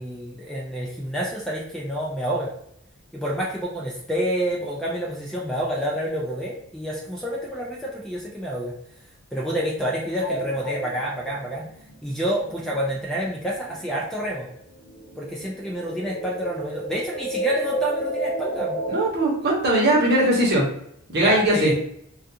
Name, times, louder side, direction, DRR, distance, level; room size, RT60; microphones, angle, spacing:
voice 1, 0.0-2.5 3.1-8.7 9.3-11.7 12.0-14.5 15.2-18.8 21.2-21.7, equal, ahead, -5 dB, 0.4 m, -28 dB
sound 1, 10.0-14.1 14.4-19.0, right 1 dB, 65° left, 0.6 m, -32 dB
voice 2, 18.9-20.7 21.1-21.7, right 1 dB, 50° right, -3 dB, 0.9 m, -20 dB
2.4 x 2.3 x 2.7 m, 0.71 s
head